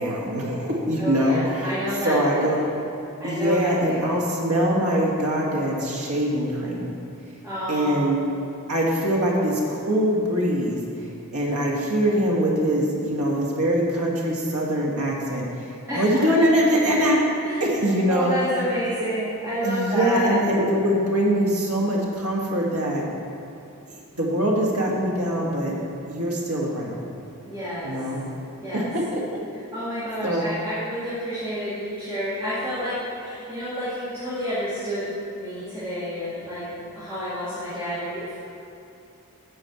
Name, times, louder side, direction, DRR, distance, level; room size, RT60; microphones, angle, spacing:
voice 1, 0.0-1.7 2.0-2.6 3.2-6.9 7.7-8.2 8.7-10.8 11.3-17.2 17.6-18.3 19.6-23.0 23.9-25.8 26.1-27.0 27.8-28.2 28.7-29.4 30.2-30.4, equal, 75° right, -2 dB, 1.8 m, -23 dB
voice 2, 1.0-2.5 3.2-4.2 7.4-8.0 15.9-16.3 17.4-17.7 18.1-20.3 27.5-27.9 28.6-28.8 29.7-35.1 35.3-38.4, equal, 10° right, -13 dB, 2.2 m, -29 dB
8.8 x 5.3 x 7.7 m, 2.7 s
head